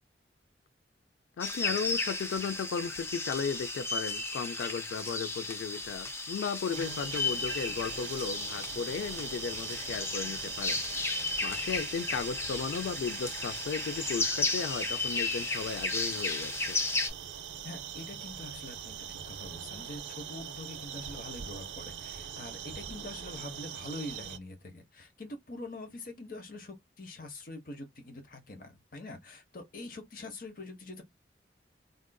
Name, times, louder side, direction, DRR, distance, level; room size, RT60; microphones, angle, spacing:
voice 1, 1.4-10.8 11.4-16.8, left 6 dB, 90° left, 0.3 m, -35 dB
sound 1, 1.4-17.1, left 3 dB, 15° left, 0.4 m, -34 dB
voice 2, 6.7-7.1 17.6-31.0, left 2 dB, 50° left, 0.8 m, -44 dB
sound 2, 6.7-24.4, right 9 dB, 80° right, 0.4 m, -42 dB
3.6 x 2.5 x 2.2 m
head